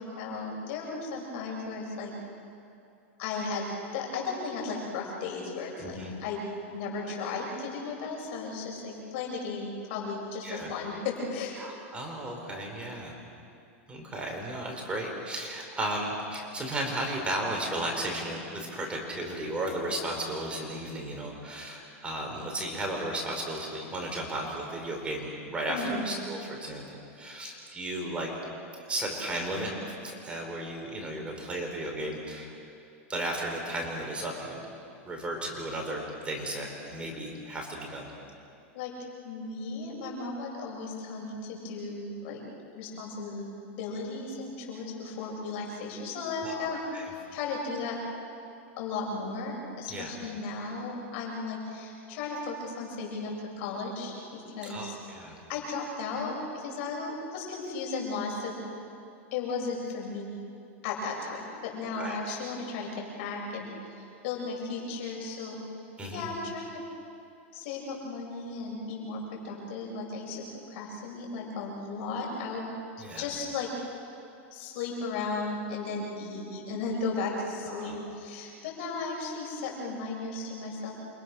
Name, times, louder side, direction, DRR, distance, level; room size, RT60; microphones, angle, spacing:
voice 1, 0.0-2.1 3.2-3.6 3.9-6.4 6.7-11.6 25.7-26.2 38.7-38.9 39.2-42.4 42.7-43.5 43.8-46.8 47.3-48.0 48.8-55.0 55.5-58.5 59.3-60.3 60.8-65.6 66.1-66.8 67.5-72.7 73.2-73.7 74.5-80.9, left 4 dB, 60° left, -1 dB, 7.7 m, -35 dB
voice 2, 5.8-6.1 10.4-10.7 11.6-13.1 13.9-26.8 27.1-28.3 28.9-29.7 30.0-32.6 33.1-34.6 35.0-38.1 46.4-47.1 49.9-50.1 54.6-55.3 61.9-62.2 66.0-66.3 73.0-73.3 77.6-78.0, right 1 dB, 15° right, 0 dB, 5.1 m, -34 dB
29.0 x 26.0 x 6.5 m, 2.6 s
supercardioid pair, 130°, 7 cm